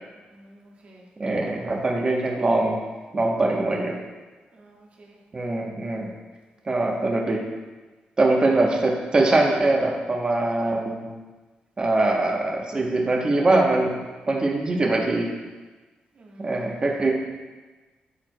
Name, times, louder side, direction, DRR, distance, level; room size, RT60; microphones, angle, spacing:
voice 1, 0.3-1.1 4.5-5.2 8.4-8.6 16.1-17.0, right 2 dB, 45° right, -2 dB, 1.2 m, -50 dB
voice 2, 1.2-2.8 3.1-4.0 5.3-6.1 6.6-7.4 8.2-11.0 11.8-14.0 14.3-15.3 16.4-17.1, right 2 dB, 30° right, 0 dB, 0.9 m, -22 dB
12.0 x 4.5 x 2.2 m, 1.3 s
cardioid pair, 120°, 3 cm